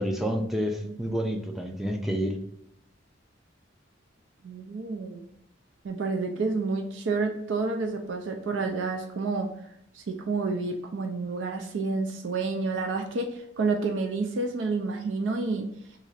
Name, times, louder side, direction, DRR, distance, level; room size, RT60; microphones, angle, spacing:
voice 1, 0.0-2.4, equal, ahead, 3 dB, 0.4 m, -29 dB
voice 2, 4.4-5.3 5.8-9.5 9.9-15.7, right 3 dB, 75° right, 3 dB, 0.4 m, -29 dB
2.9 x 2.5 x 4.0 m, 0.77 s
head